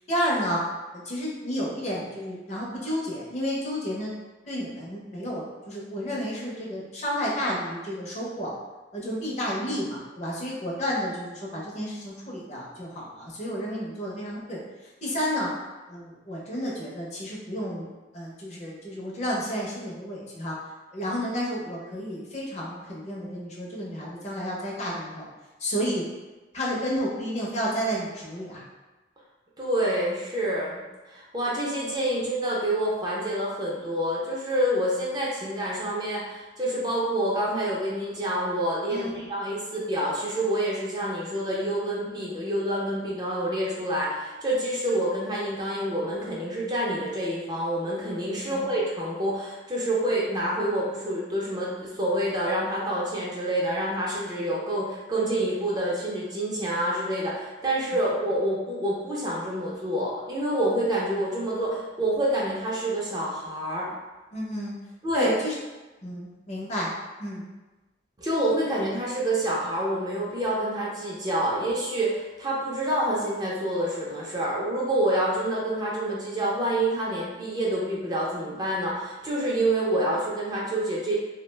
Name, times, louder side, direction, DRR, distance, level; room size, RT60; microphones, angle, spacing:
voice 1, 0.1-0.6 0.9-4.1 4.5-8.5 8.9-14.6 15.0-15.5 15.9-17.9 18.1-20.6 20.9-25.2 25.6-26.0 26.5-28.6 38.9-39.2 48.4-48.6 64.3-64.7 65.1-65.5 66.0-66.9 67.2-67.4, equal, 35° left, -4 dB, 0.5 m, -31 dB
voice 2, 29.6-63.9 65.0-65.3 68.2-81.2, right 1 dB, 20° right, -5 dB, 0.4 m, -27 dB
2.4 x 2.1 x 3.1 m, 1.2 s
head